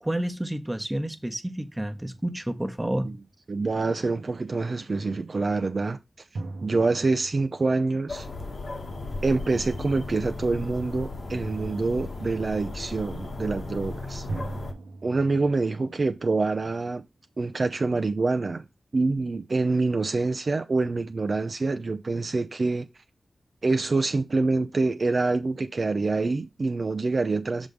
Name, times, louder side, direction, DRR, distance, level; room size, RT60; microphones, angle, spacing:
voice 1, 0.0-3.1, right 1 dB, 15° right, 1.2 m, -30 dB
sound 1, 1.7-3.4 6.3-9.0 14.3-17.3, right 2 dB, 85° right, 1.1 m, -41 dB
voice 2, 3.5-6.0 6.6-8.3 9.2-14.3 15.0-17.0 17.4-18.6 18.9-22.9 23.6-27.7, right 3 dB, 60° right, 0.6 m, -26 dB
sound 2, 8.1-14.7, left 2 dB, 75° left, 1.4 m, -36 dB
6.2 x 3.5 x 5.3 m
cardioid pair, 45°, 0 cm